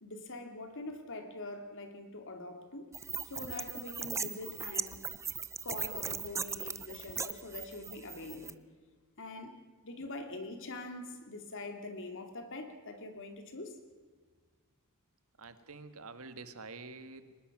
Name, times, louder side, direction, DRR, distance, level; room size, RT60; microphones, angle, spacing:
voice 1, 0.0-2.9 3.2-5.0 5.6-8.6 9.2-9.6 9.8-13.8, left 2 dB, 60° left, 2.7 m, -44 dB
sound 1, 2.9-8.5, right 5 dB, 15° right, 0.6 m, -39 dB
voice 2, 15.4-17.3, right 3 dB, 70° right, 1.6 m, -47 dB
23.5 x 20.0 x 6.1 m
head